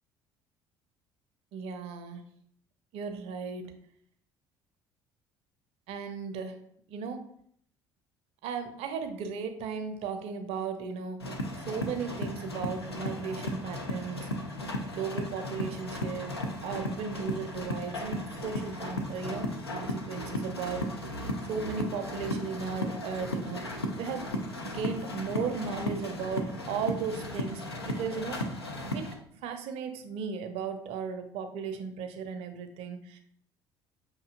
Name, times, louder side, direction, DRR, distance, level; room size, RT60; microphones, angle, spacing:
voice 1, 1.5-2.2 2.9-3.7 5.9-6.6 6.9-7.2 8.4-11.2 11.6-14.3 14.9-16.4 16.6-21.1 21.5-24.3 24.7-28.4 28.9-29.0 29.3-33.2, right 6 dB, 55° right, 7 dB, 0.5 m, -36 dB
sound 1, 11.2-29.1, left 1 dB, 85° left, 0.4 m, -35 dB
5.9 x 2.7 x 2.4 m, 0.66 s
figure-of-eight pair, 55°, 13 cm